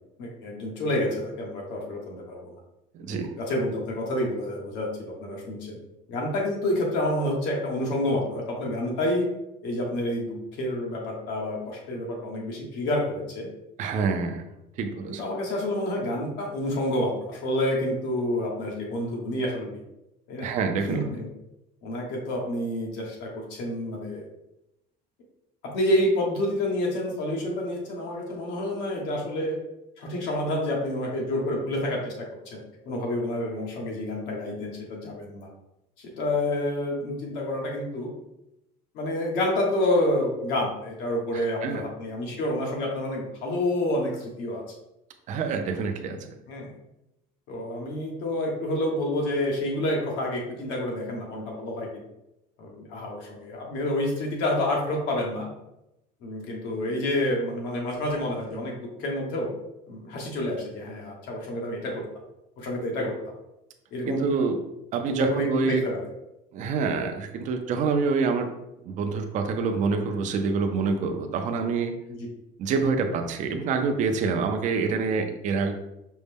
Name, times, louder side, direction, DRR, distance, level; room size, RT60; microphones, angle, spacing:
voice 1, 0.2-2.5 3.1-5.8 6.1-9.3 9.6-13.5 15.1-19.8 20.3-20.5 20.9-21.3 21.8-24.2 25.6-29.6 30.0-35.5 36.0-38.1 38.9-44.6 46.5-46.7 47.5-52.0 52.6-55.5 56.2-59.5 59.9-62.1 62.6-63.3 63.9-64.3 65.1-66.1 72.1-72.3, left 1 dB, 70° left, -1 dB, 1.2 m, -28 dB
voice 2, 2.9-3.3 13.8-14.4 14.8-15.2 20.4-21.0 41.3-41.8 45.3-46.2 64.1-64.6 64.9-65.8 66.5-68.5 68.8-72.0 72.6-75.7, right 4 dB, 40° right, 5 dB, 0.5 m, -26 dB
5.2 x 2.1 x 3.4 m, 0.88 s
cardioid pair, 145°, 18 cm